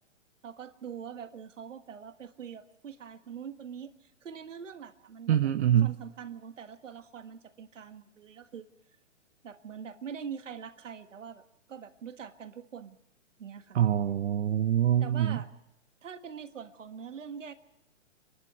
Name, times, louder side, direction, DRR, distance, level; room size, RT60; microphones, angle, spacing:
voice 1, 0.4-5.5 5.8-8.7 9.4-13.0 13.4-13.8 15.0-15.5 16.0-17.5, right 7 dB, 75° right, 9 dB, 1.7 m, -43 dB
voice 2, 5.3-5.9 13.7-15.4, right 10 dB, 60° right, 10 dB, 0.8 m, -25 dB
27.5 x 11.5 x 9.0 m, 0.91 s
hypercardioid pair, 140°, 37 cm